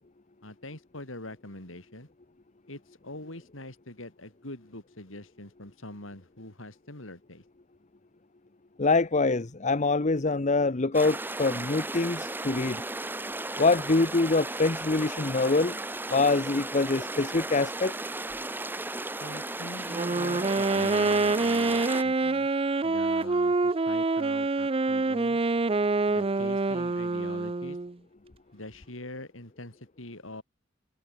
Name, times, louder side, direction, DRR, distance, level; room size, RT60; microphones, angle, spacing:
voice 1, 0.4-2.1 2.7-7.4 19.2-22.5 22.8-25.4 26.1-27.8 28.5-30.4, left 1 dB, 80° left, 5.9 m, -43 dB
voice 2, 8.8-12.8 13.6-15.8 16.1-17.9 22.7-22.8, left 3 dB, 35° left, 0.9 m, -25 dB
sound 1, 10.9-22.0, right 2 dB, 10° right, 1.0 m, -35 dB
Wind instrument woodwind instrument, 19.8-27.9, right 3 dB, 30° right, 0.6 m, -26 dB
head